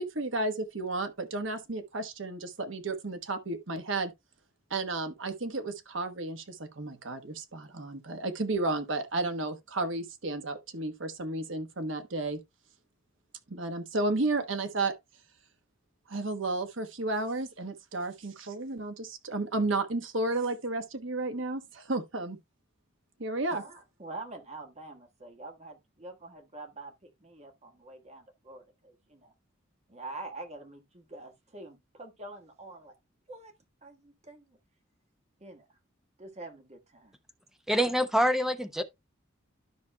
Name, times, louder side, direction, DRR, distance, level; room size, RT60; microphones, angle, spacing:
voice 1, 0.0-4.1 4.7-12.4 13.5-14.9 16.1-22.4 23.2-23.6, right 2 dB, 65° right, 1.2 m, -32 dB
voice 2, 23.5-29.3 29.9-32.9 33.3-33.5 33.8-34.6 35.4-35.6 36.2-37.2, right 2 dB, 35° right, 1.4 m, -45 dB
voice 3, 37.7-38.8, equal, ahead, 0.7 m, -25 dB
12.5 x 5.9 x 2.2 m
head